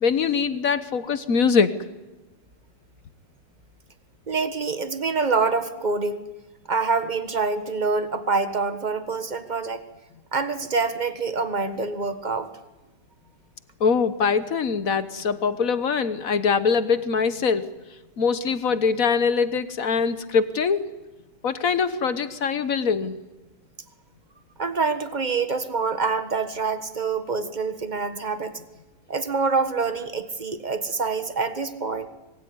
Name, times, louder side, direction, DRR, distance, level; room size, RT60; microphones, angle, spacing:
voice 1, 0.0-1.7 13.8-17.7 18.2-20.9 21.4-23.2, left 5 dB, 50° left, 12 dB, 1.3 m, -23 dB
voice 2, 4.3-6.3 6.7-9.8 10.3-12.5 24.6-28.6 29.1-32.1, right 4 dB, 25° right, 9 dB, 1.4 m, -26 dB
25.0 x 22.0 x 9.6 m, 1.1 s
omnidirectional pair, 2.4 m